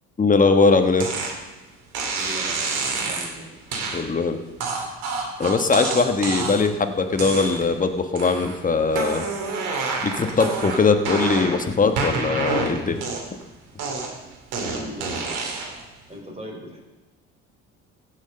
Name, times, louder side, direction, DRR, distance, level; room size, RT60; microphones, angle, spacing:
voice 1, 0.2-1.1 3.9-4.4 5.4-9.2 10.0-13.0, left 4 dB, 25° left, 7 dB, 1.4 m, -20 dB
sound 1, 1.0-1.3 1.9-3.3 3.7-4.0 4.6-6.7 7.1-7.8 8.1-8.6 8.9-11.6 12.0-13.4 13.8-15.8, right 4 dB, 75° right, 2.8 m, -28 dB
voice 2, 2.1-3.5 14.6-15.5 16.1-16.8, equal, 20° right, 0 dB, 4.8 m, -39 dB
16.0 x 6.6 x 6.7 m, 1.1 s
supercardioid pair, 75°, 31 cm